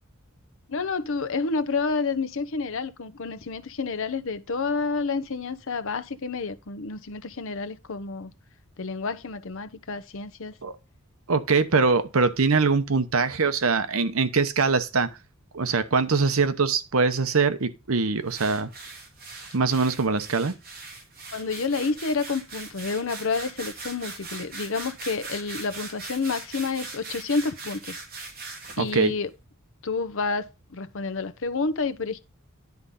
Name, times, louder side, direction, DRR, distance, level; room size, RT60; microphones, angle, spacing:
voice 1, 0.7-8.3 8.8-10.6 21.3-28.0 28.8-29.3 29.8-32.2, left 4 dB, 65° left, 0.8 m, -29 dB
voice 2, 11.3-15.1 15.5-18.7 19.5-20.5 28.8-29.1, right 4 dB, 70° right, 0.9 m, -23 dB
sound 1, 18.3-28.9, right 3 dB, 45° right, 2.6 m, -40 dB
10.5 x 3.8 x 5.5 m
head